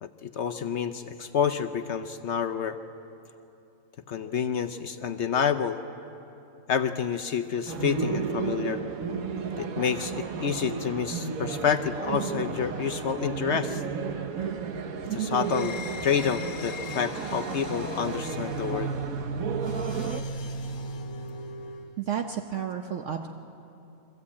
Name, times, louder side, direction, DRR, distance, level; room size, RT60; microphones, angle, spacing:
voice 1, 0.0-2.8 4.1-5.8 6.7-8.8 9.6-13.8 15.1-15.8 16.0-18.9, left 7 dB, 60° left, 7 dB, 0.9 m, -28 dB
sound 1, 7.7-20.2, right 5 dB, 85° right, 1.5 m, -33 dB
sound 2, 15.4-22.0, right 1 dB, 85° left, 1.6 m, -37 dB
voice 2, 22.0-23.3, right 8 dB, 65° right, 5 dB, 1.0 m, -31 dB
23.5 x 14.5 x 8.5 m, 2.8 s
omnidirectional pair, 1.5 m